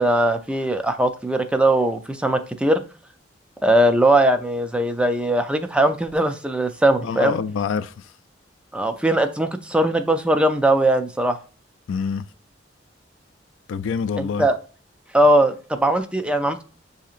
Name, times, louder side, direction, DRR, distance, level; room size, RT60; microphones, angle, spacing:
voice 1, 0.0-2.8 3.6-7.4 8.7-11.4 14.2-14.6 15.1-16.6, right 1 dB, 5° right, 0.3 m, -20 dB
voice 2, 7.0-8.1 11.9-12.3 13.7-14.5, left 6 dB, 85° left, 0.3 m, -26 dB
7.1 x 2.8 x 2.4 m
head